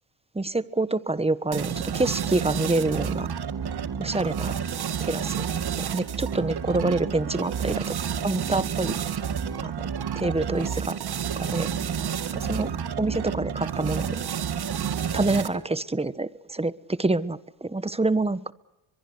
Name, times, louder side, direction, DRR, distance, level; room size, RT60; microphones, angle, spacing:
voice 1, 0.3-3.3 4.0-4.5 5.0-5.4 5.7-7.9 8.2-9.0 9.6-9.9 10.2-11.0 11.4-11.7 12.3-12.7 13.0-14.2 15.1-18.5, right 2 dB, 15° right, 15 dB, 1.3 m, -27 dB
sound 1, 1.5-15.7, right 7 dB, 55° right, 2.1 m, -30 dB
23.0 x 22.5 x 8.2 m, 0.89 s
cardioid pair, 75°, 46 cm